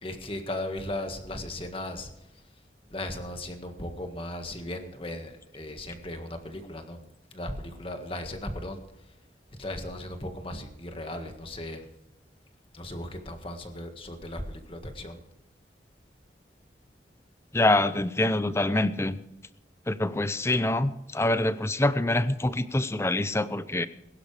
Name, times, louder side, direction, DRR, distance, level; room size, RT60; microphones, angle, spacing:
voice 1, 0.0-2.4 2.9-7.0 7.3-9.1 9.6-11.9 12.7-15.2, left 1 dB, 30° left, 5 dB, 1.7 m, -37 dB
voice 2, 17.5-19.2 19.9-23.9, left 2 dB, 15° left, 13 dB, 0.6 m, -25 dB
21.5 x 12.0 x 3.4 m, 0.86 s
head